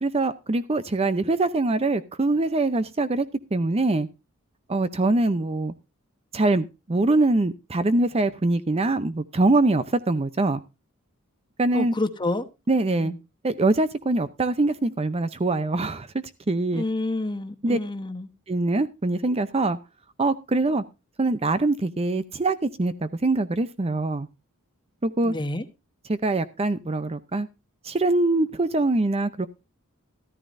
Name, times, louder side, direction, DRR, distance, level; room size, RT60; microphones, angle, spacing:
voice 1, 0.0-4.1 4.7-5.7 6.3-10.6 11.6-11.9 12.7-13.1 13.4-16.1 16.5-16.8 17.6-17.8 18.5-19.8 20.2-20.8 21.2-24.3 25.0-25.3 26.1-27.5 27.8-29.5, right 2 dB, 30° right, 0.6 m, -23 dB
voice 2, 11.7-12.5 13.0-13.2 16.7-18.3 25.2-25.6, left 2 dB, 20° left, 1.1 m, -28 dB
14.0 x 13.5 x 2.6 m
head